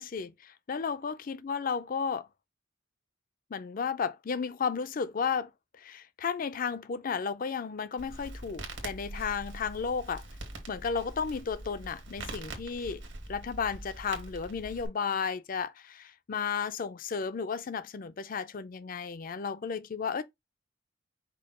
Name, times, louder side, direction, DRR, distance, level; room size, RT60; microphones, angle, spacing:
voice 1, 0.0-2.3 3.5-5.5 5.8-10.2 10.7-13.0 13.3-20.2, left 6 dB, 45° left, 0.4 m, -33 dB
Crackle, 8.0-14.9, right 2 dB, 70° right, 1.6 m, -43 dB
5.3 x 2.3 x 4.2 m
head